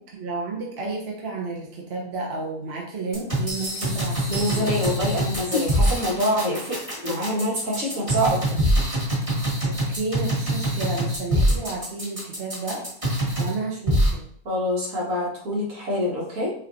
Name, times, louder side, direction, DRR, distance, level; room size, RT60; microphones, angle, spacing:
voice 1, 0.1-4.8 9.6-12.8 13.4-14.2, right 3 dB, 50° right, -2 dB, 1.0 m, -32 dB
sound 1, 3.1-13.5 13.9-14.1, right 1 dB, 25° right, 1.7 m, -24 dB
voice 2, 4.3-8.6 14.5-16.5, equal, 70° right, -4 dB, 1.8 m, -26 dB
6.4 x 3.0 x 2.6 m, 0.64 s
omnidirectional pair, 1.4 m